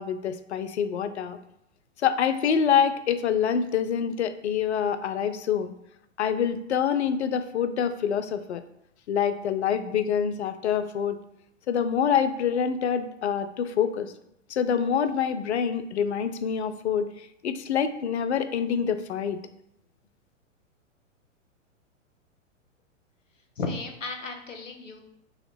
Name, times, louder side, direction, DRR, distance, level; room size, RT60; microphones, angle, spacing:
voice 1, 0.0-1.4 2.0-5.7 6.2-8.6 9.1-11.2 11.7-14.1 14.5-17.1 17.4-19.4, left 7 dB, 60° left, 10 dB, 0.5 m, -26 dB
voice 2, 23.6-25.0, left 3 dB, 80° left, 4 dB, 0.8 m, -34 dB
3.8 x 2.9 x 3.2 m, 0.78 s
figure-of-eight pair, 105°, 38 cm